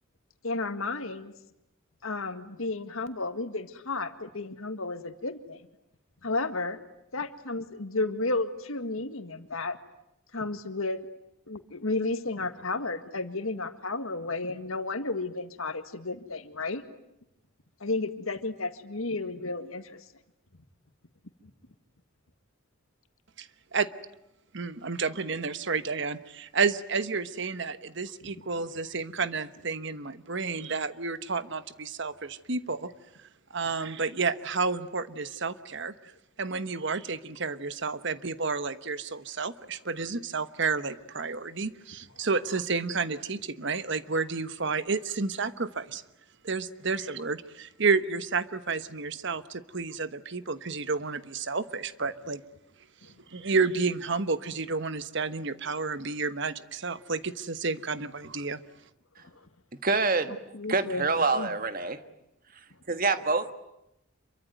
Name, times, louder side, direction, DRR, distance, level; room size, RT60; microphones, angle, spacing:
voice 1, 0.4-1.3 2.0-5.6 6.2-6.8 7.1-9.8 10.3-11.0 11.5-16.8 17.8-20.0 28.2-28.3 59.3-59.4 60.3-61.1 61.3-61.5, left 3 dB, 75° left, 9 dB, 1.9 m, -32 dB
voice 2, 24.5-32.9 33.5-35.9 36.4-46.0 46.4-52.4 53.3-58.6, right 4 dB, 55° right, 13 dB, 1.2 m, -31 dB
voice 3, 59.8-60.4 60.7-62.0 62.9-63.5, right 3 dB, 40° right, 10 dB, 1.5 m, -26 dB
27.0 x 23.5 x 9.3 m, 0.85 s
head